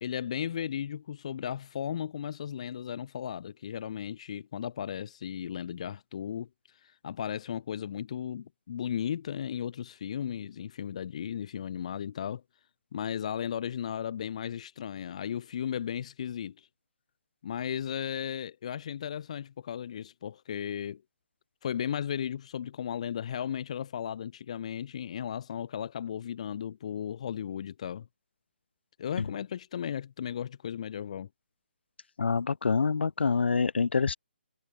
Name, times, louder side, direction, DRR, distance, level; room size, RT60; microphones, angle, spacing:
voice 1, 0.0-12.4 12.9-16.7 17.4-21.0 21.6-28.1 29.0-31.3, left 9 dB, 35° left, 0.7 m, -35 dB
voice 2, 32.2-34.2, left 5 dB, 75° left, 1.6 m, -26 dB
hypercardioid pair, 170°, 6 cm